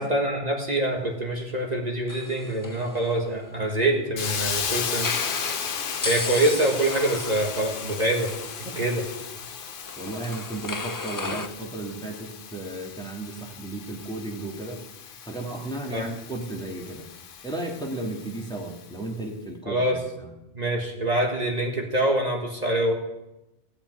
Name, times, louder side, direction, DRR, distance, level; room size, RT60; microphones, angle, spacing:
voice 1, 0.0-5.1 6.0-9.0 11.3-11.4 15.9-16.0 19.6-20.0 20.5-22.9, right 1 dB, 40° right, -1 dB, 1.7 m, -25 dB
inserting paper into braille writer, 2.1-4.2 4.9-11.5, left 3 dB, 25° left, 0.5 m, -36 dB
Hiss, 4.2-18.9, left 7 dB, 60° left, 0.9 m, -35 dB
voice 2, 10.0-14.8 15.3-17.1 17.4-20.3, right 2 dB, 5° left, -2 dB, 2.2 m, -34 dB
16.0 x 6.0 x 9.1 m, 0.94 s
omnidirectional pair, 1.1 m